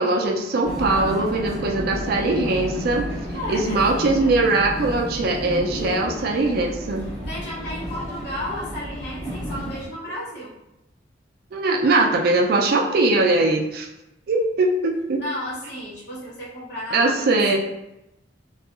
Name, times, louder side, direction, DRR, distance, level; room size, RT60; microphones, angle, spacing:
voice 1, 0.0-3.1 3.5-7.0 11.5-13.9 14.3-15.2 16.9-17.6, right 2 dB, 55° right, 2 dB, 0.4 m, -21 dB
Vehicle, 0.6-9.9, equal, ahead, 1.5 m, -32 dB
voice 2, 3.3-4.4 7.2-10.5 15.2-17.3, left 1 dB, 60° left, -6 dB, 0.9 m, -33 dB
2.7 x 2.3 x 2.4 m, 0.91 s
head